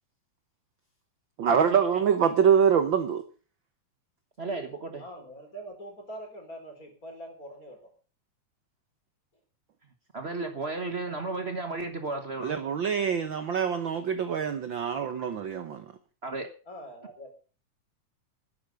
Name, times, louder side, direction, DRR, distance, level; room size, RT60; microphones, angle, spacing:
voice 1, 1.4-3.2 12.4-15.8, right 7 dB, 60° right, 9 dB, 1.3 m, -25 dB
voice 2, 4.4-5.0 10.1-12.6 16.2-16.5, right 3 dB, 90° right, 6 dB, 0.5 m, -34 dB
voice 3, 5.0-7.9 16.7-17.3, right 1 dB, 30° left, 4 dB, 4.3 m, -43 dB
12.0 x 10.5 x 6.5 m, 0.37 s
omnidirectional pair, 3.3 m